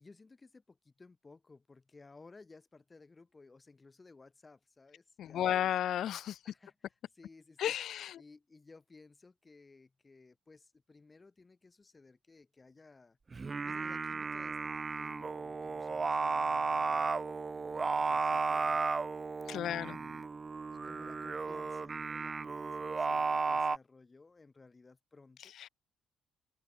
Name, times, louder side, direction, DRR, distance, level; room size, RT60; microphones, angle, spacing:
voice 1, 0.0-5.7 6.4-13.2 13.6-17.1 17.5-18.9 19.1-19.3 19.5-20.2 20.7-25.5, left 3 dB, 20° left, 7.4 m, -58 dB
voice 2, 5.2-6.4 7.6-8.2 19.5-20.0, left 11 dB, 60° left, 0.7 m, -33 dB
Singing, 13.3-23.8, right 4 dB, 25° right, 1.0 m, -34 dB
cardioid pair, 150°, 0 cm